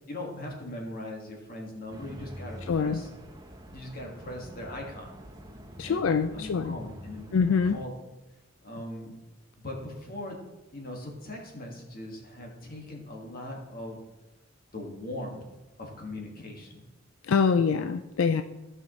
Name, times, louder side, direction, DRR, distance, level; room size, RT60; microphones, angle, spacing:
voice 1, 0.1-3.1 3.7-5.2 5.8-6.0 6.3-7.3 7.6-7.9 8.6-9.1 9.6-10.4 10.7-14.0 14.7-15.4 15.8-16.8 17.7-17.9, left 1 dB, 50° left, 0 dB, 1.8 m, -40 dB
sound 1, 1.9-7.8, equal, 20° right, 0.8 m, -45 dB
voice 2, 2.7-3.0 5.8-6.8 7.3-7.8 17.3-18.4, left 5 dB, 90° left, 9 dB, 0.4 m, -24 dB
15.5 x 5.5 x 3.1 m, 1.1 s
head